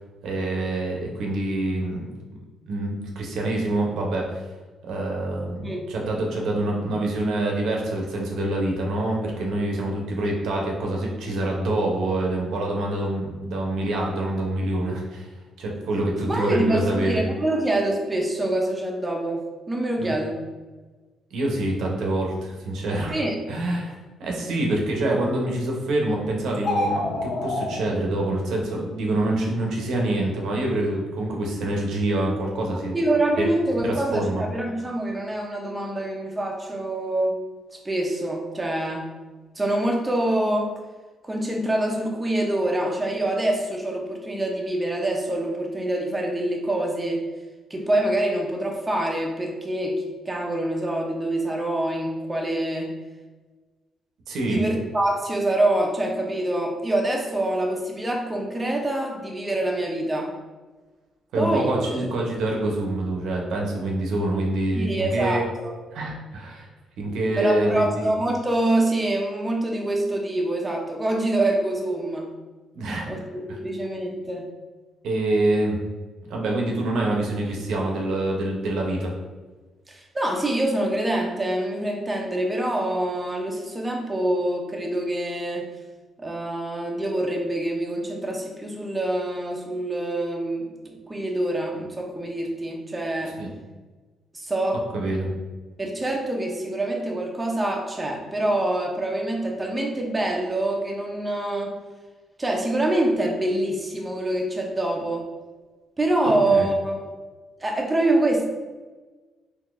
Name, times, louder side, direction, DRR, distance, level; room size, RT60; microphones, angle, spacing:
voice 1, 0.2-2.1 2.7-4.5 4.8-15.3 15.6-17.2 20.0-20.1 21.3-23.2 23.5-32.9 33.4-33.5 33.8-34.4 54.3-54.6 61.3-65.4 65.9-66.7 67.0-68.1 72.7-73.1 75.0-75.8 76.2-79.1 93.4-93.5 94.9-95.3 106.5-106.7, right 1 dB, 75° right, 0 dB, 0.7 m, -26 dB
voice 2, 16.3-20.4 23.1-23.4 32.9-37.4 37.8-39.1 39.6-40.7 41.2-47.3 47.7-52.9 54.5-60.3 61.4-62.1 64.7-65.7 67.4-72.3 73.1-74.5 79.9-85.7 86.2-93.4 94.3-94.8 95.8-101.8 102.4-105.3 106.0-107.0 107.6-108.5, right 1 dB, 15° right, 0 dB, 0.5 m, -25 dB
sound 1, 26.5-27.7, left 2 dB, 65° left, 0.8 m, -26 dB
3.7 x 2.6 x 2.5 m, 1.3 s
cardioid pair, 110°, 0 cm